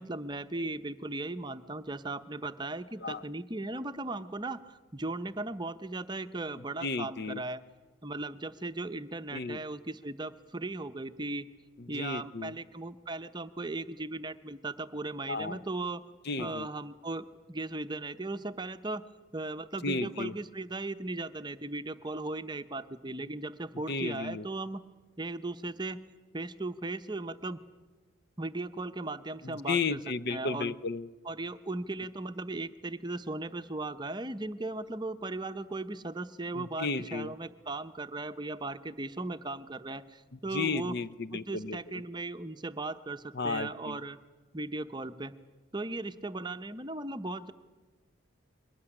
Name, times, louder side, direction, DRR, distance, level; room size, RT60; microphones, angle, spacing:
voice 1, 0.0-7.6 8.0-11.5 11.9-16.0 16.4-19.0 19.3-24.8 25.2-26.0 26.3-27.6 28.4-30.0 30.3-30.7 31.2-41.0 41.3-44.2 44.5-45.3 45.7-47.5, right 2 dB, 20° right, 10 dB, 0.8 m, -37 dB
voice 2, 6.8-7.4 9.3-9.6 11.8-12.5 15.3-15.6 16.2-16.7 19.8-20.3 23.9-24.4 29.4-31.1 36.5-37.3 40.3-41.8 43.3-44.0, left 4 dB, 50° left, 15 dB, 0.7 m, -34 dB
22.5 x 19.0 x 10.0 m, 1.3 s
head